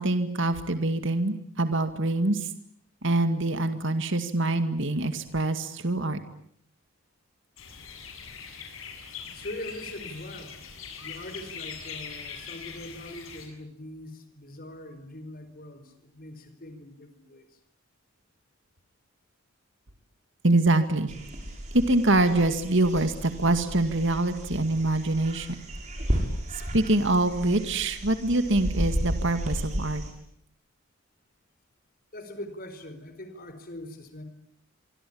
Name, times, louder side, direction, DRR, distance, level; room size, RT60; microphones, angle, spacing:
voice 1, 0.0-2.5 3.0-6.2 20.4-21.1 21.7-25.5 26.5-30.0, right 2 dB, 60° right, 9 dB, 2.2 m, -25 dB
sound 1, 7.6-13.5, left 6 dB, 75° left, 7.7 m, -41 dB
voice 2, 9.1-10.7 11.0-17.6 32.1-34.2, left 1 dB, 45° left, 10 dB, 4.6 m, -42 dB
sound 2, 21.1-30.1, equal, 35° right, 6.9 m, -34 dB
26.0 x 25.0 x 8.7 m, 0.67 s
head